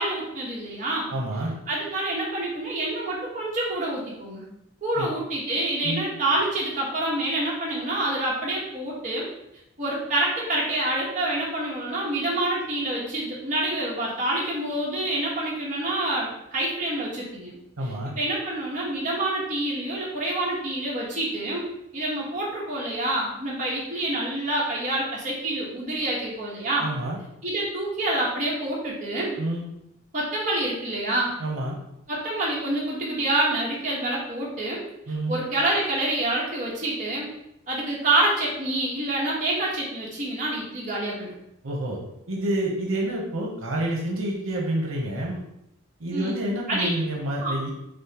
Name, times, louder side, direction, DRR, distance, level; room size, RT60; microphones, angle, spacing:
voice 1, 0.0-1.1 1.7-4.5 4.8-9.3 9.8-17.5 18.2-21.6 21.9-26.9 27.4-29.4 30.1-31.3 32.1-34.8 35.3-37.3 37.7-41.3 46.1-46.4 46.7-46.9 47.4-47.6, right 1 dB, 35° right, -5 dB, 1.2 m, -27 dB
voice 2, 1.1-1.5 5.0-5.1 5.8-6.0 17.8-18.1 26.8-27.2 29.4-29.6 31.4-31.8 35.1-35.4 41.6-42.0 42.3-45.4 46.0-47.7, right 1 dB, 85° right, -2 dB, 0.8 m, -28 dB
6.2 x 2.1 x 2.9 m, 0.82 s
head